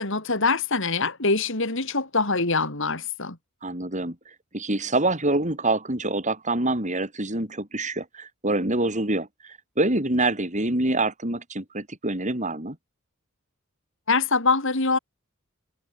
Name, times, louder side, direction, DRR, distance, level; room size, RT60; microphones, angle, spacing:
voice 1, 0.0-3.4 14.1-15.0, left 3 dB, 60° left, 4.3 m, -24 dB
voice 2, 3.6-4.1 4.5-12.7, right 2 dB, 35° right, 5.0 m, -26 dB
head